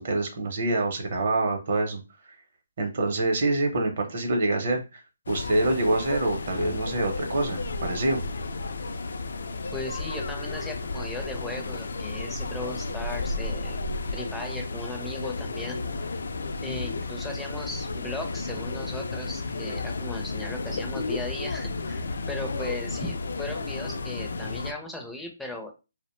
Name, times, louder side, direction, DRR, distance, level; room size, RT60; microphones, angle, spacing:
voice 1, 0.0-2.0 2.8-8.3, right 2 dB, 45° right, 3 dB, 0.7 m, -26 dB
sound 1, 5.3-24.7, left 3 dB, 70° left, 0.3 m, -33 dB
voice 2, 9.7-13.8 14.1-15.8 16.6-25.7, left 1 dB, ahead, 1 dB, 0.4 m, -37 dB
2.5 x 2.0 x 3.0 m, 0.28 s
hypercardioid pair, 165°, 0 cm